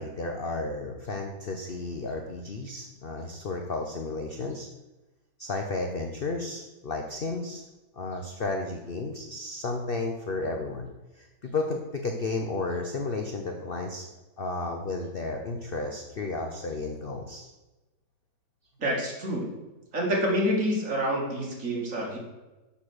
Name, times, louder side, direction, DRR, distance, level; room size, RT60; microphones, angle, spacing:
voice 1, 0.0-4.7 5.4-7.6 8.0-10.9 11.2-14.1 14.4-17.5, left 3 dB, 55° left, 3 dB, 0.6 m, -33 dB
voice 2, 18.8-19.5 19.9-22.2, equal, 50° right, -2 dB, 2.2 m, -27 dB
6.7 x 5.7 x 6.3 m, 1.1 s
omnidirectional pair, 1.8 m